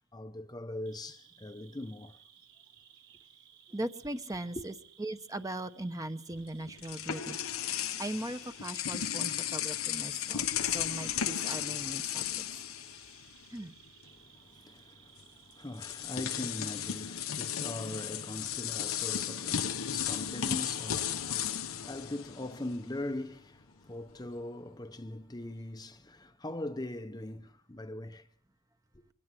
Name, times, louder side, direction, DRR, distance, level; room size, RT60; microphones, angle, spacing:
voice 1, 0.0-2.2 4.5-4.6 14.0-28.3, left 1 dB, 20° left, 0.8 m, -41 dB
Cricket, 0.9-20.9, right 8 dB, 80° right, 4.7 m, -59 dB
voice 2, 3.7-4.7 5.0-7.4 7.6-12.3 13.5-13.7, right 1 dB, 15° right, 0.9 m, -39 dB
sound 1, 6.3-13.6 13.9-14.1 15.2-15.3 15.7-22.9, left 9 dB, 90° left, 1.0 m, -35 dB
23.0 x 18.0 x 7.6 m
head